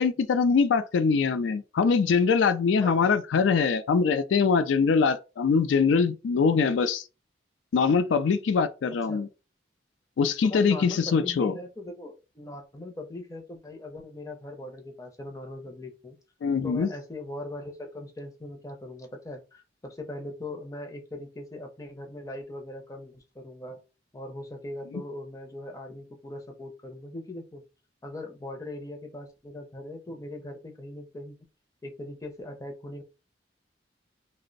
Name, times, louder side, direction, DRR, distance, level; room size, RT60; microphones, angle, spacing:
voice 1, 0.0-7.0 7.7-9.3 10.2-11.5 16.4-16.9, left 5 dB, 90° left, 0.3 m, -23 dB
voice 2, 2.8-3.1 9.1-9.3 10.4-16.2 16.6-23.8 24.1-27.6 28.0-31.4 31.8-33.0, left 1 dB, 20° left, 0.5 m, -40 dB
2.5 x 2.0 x 3.8 m
head